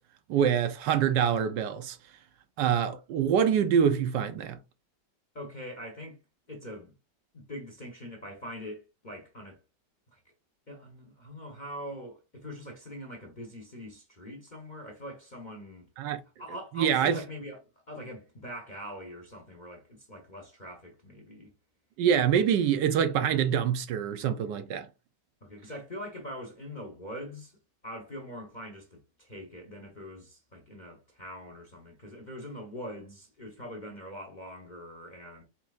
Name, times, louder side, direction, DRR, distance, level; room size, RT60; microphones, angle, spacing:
voice 1, 0.3-2.0 2.6-4.6 16.0-16.2 16.7-17.2 22.0-24.9, right 8 dB, 80° right, 1.3 m, -25 dB
voice 2, 5.3-6.2 6.5-6.9 7.3-9.6 10.1-10.2 10.7-15.8 16.4-17.6 17.9-21.5 22.3-22.4 25.4-27.6 27.8-35.4, equal, 35° left, 0.7 m, -43 dB
4.4 x 4.0 x 2.4 m
omnidirectional pair, 1.9 m